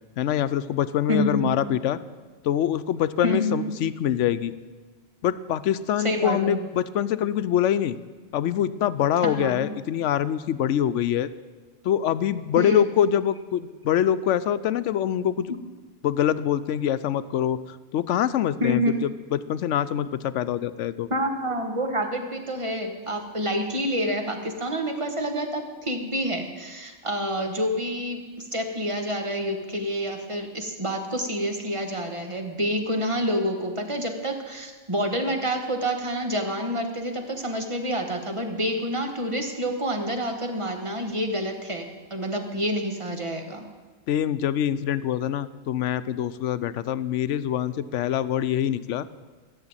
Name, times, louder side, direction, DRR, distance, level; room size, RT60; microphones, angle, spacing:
voice 1, 0.2-2.0 2.4-4.5 5.2-8.0 8.3-11.3 11.8-15.5 16.0-17.6 17.9-21.1 44.1-49.1, left 10 dB, 85° left, 14 dB, 0.9 m, -24 dB
voice 2, 1.1-1.5 3.2-3.7 6.0-6.6 9.2-9.7 12.6-12.9 15.5-15.6 18.6-19.0 21.1-43.6, equal, 25° right, 4 dB, 1.4 m, -28 dB
15.0 x 7.0 x 8.8 m, 1.3 s
omnidirectional pair, 1.2 m